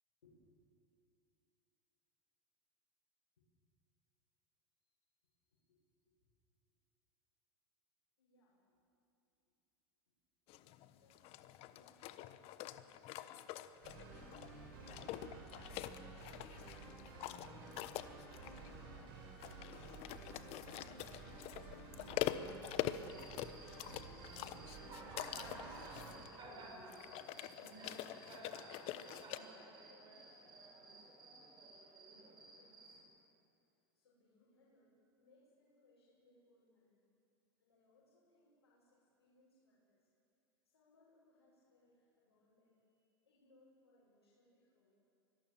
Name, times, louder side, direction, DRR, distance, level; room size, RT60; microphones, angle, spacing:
voice 1, 5.4-6.2 8.2-8.6 10.7-13.3 13.8-16.3 17.2-19.8 25.3-26.8 29.0-31.1 31.9-33.2 33.9-37.0 37.6-40.0 40.6-44.9, left 2 dB, 80° left, -8 dB, 7.2 m, -71 dB
sound 1, 10.5-29.4, left 13 dB, 50° left, 1.1 m, -45 dB
sound 2, 13.8-26.2, right 3 dB, 65° right, 6.8 m, -53 dB
Cricket, 23.0-33.0, right 2 dB, 35° right, 5.6 m, -54 dB
24.5 x 18.0 x 7.4 m, 2.6 s
hypercardioid pair, 90°, 13 cm